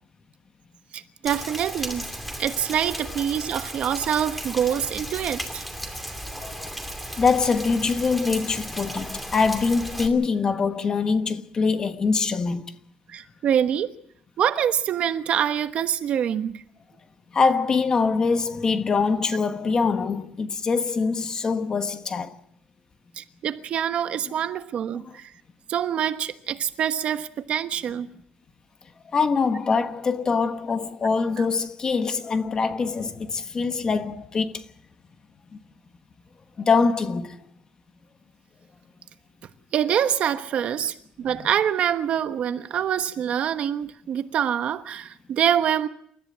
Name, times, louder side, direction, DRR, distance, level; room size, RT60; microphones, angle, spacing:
voice 1, 0.9-2.1 2.4-5.6 13.1-13.9 14.4-16.6 23.2-25.3 25.7-28.1 31.4-31.5 39.7-45.9, right 9 dB, 55° right, 1.2 m, -25 dB
Rain, 1.3-10.1, equal, ahead, 2.6 m, -35 dB
voice 2, 6.3-6.8 7.2-12.7 17.3-22.3 24.9-25.2 29.1-34.6 35.5-35.6 36.6-37.4, left 4 dB, 30° left, 1.2 m, -24 dB
28.0 x 14.0 x 7.5 m
cardioid pair, 170°, 3 cm